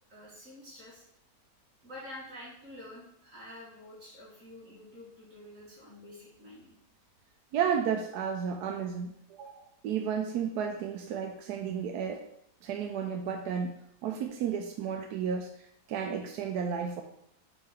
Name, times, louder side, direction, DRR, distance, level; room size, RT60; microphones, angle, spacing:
voice 1, 0.1-1.1 1.8-6.8, left 1 dB, 50° right, -6 dB, 2.1 m, -48 dB
voice 2, 7.5-12.3 12.6-13.7 14.0-17.0, right 7 dB, 75° right, 3 dB, 1.1 m, -33 dB
4.7 x 4.2 x 4.9 m, 0.72 s
omnidirectional pair, 1.8 m